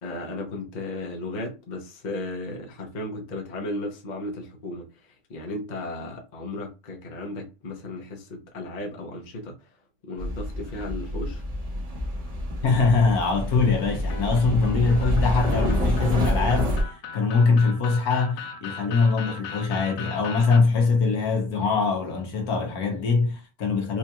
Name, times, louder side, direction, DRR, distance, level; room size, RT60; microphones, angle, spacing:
voice 1, 0.0-9.7 10.0-11.4, left 2 dB, 40° left, 0.7 m, -35 dB
sound 1, 10.2-16.8, equal, 25° right, 1.0 m, -27 dB
voice 2, 12.6-16.7 17.1-24.0, left 4 dB, 65° left, 1.4 m, -22 dB
sound 2, 14.1-20.6, left 5 dB, 85° left, 1.3 m, -39 dB
4.3 x 2.4 x 2.9 m
omnidirectional pair, 1.8 m